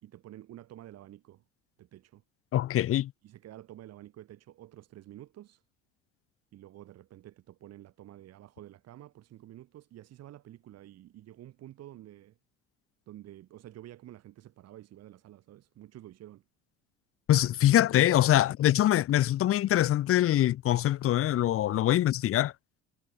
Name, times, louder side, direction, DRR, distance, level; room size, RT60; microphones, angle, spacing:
voice 1, 0.0-1.4 1.8-2.2 3.2-5.6 6.5-12.4 13.1-16.4, right 13 dB, 55° right, 2.9 m, -50 dB
voice 2, 2.5-3.1 17.3-22.5, left 13 dB, 45° left, 0.9 m, -24 dB
hypercardioid pair, 65°, 30 cm